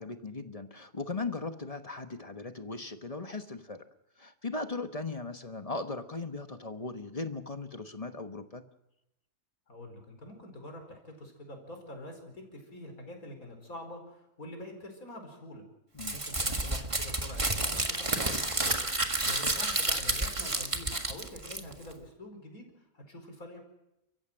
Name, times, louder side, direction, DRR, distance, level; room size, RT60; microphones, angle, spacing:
voice 1, 0.0-3.8 4.2-8.6 15.9-16.2, left 3 dB, 25° left, 8 dB, 1.2 m, -38 dB
voice 2, 9.7-15.7 16.1-23.6, left 1 dB, 75° left, 4 dB, 5.3 m, -46 dB
Crumpling crinkling, 16.0-21.9, right 2 dB, 20° right, 1.7 m, -30 dB
30.0 x 15.0 x 7.7 m, 0.89 s
omnidirectional pair, 1.5 m